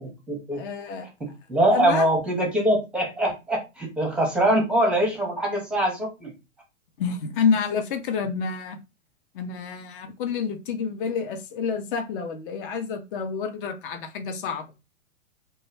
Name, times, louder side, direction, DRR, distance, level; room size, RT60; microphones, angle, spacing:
voice 1, 0.0-0.6 1.2-6.3, right 1 dB, 5° right, 0.7 m, -23 dB
voice 2, 0.5-1.1 1.7-2.1 7.0-8.8 9.3-14.7, left 6 dB, 45° left, 0.6 m, -28 dB
2.2 x 2.1 x 3.3 m
figure-of-eight pair, 115°, 38 cm